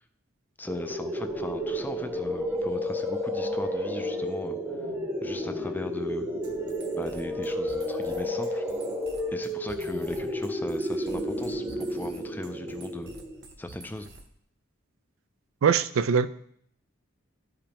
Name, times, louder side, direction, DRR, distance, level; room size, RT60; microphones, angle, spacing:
voice 1, 0.6-4.6 5.2-6.3 6.9-8.6 9.3-13.1 13.6-14.1, left 1 dB, 10° left, 0.3 m, -38 dB
sound 1, 0.7-13.5, equal, 10° right, 0.7 m, -31 dB
sound 2, 6.4-14.4, right 3 dB, 50° right, 0.9 m, -49 dB
voice 2, 15.6-16.3, right 6 dB, 85° right, 0.4 m, -22 dB
12.5 x 5.0 x 2.9 m
head